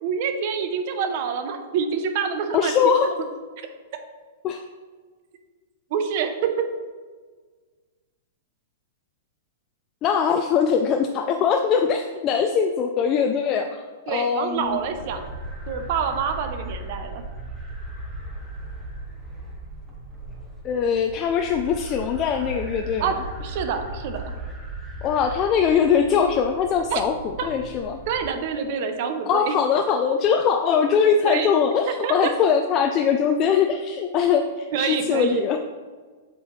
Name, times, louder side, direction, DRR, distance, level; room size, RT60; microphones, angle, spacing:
voice 1, 0.0-2.7 5.9-6.7 14.1-15.3 15.7-17.2 23.0-23.1 23.4-24.3 26.9-27.0 27.4-27.5 28.1-29.5 31.2-31.5 31.9-32.3 34.7-35.5, right 6 dB, 50° right, 7 dB, 0.7 m, -26 dB
voice 2, 2.5-3.1 4.4-4.6 10.0-14.8 20.6-23.1 25.0-28.0 29.3-35.6, left 7 dB, 30° left, 4 dB, 0.3 m, -22 dB
sound 1, 14.5-28.3, right 1 dB, 5° right, 0.9 m, -37 dB
7.2 x 4.4 x 3.1 m, 1.5 s
hypercardioid pair, 150°, 0 cm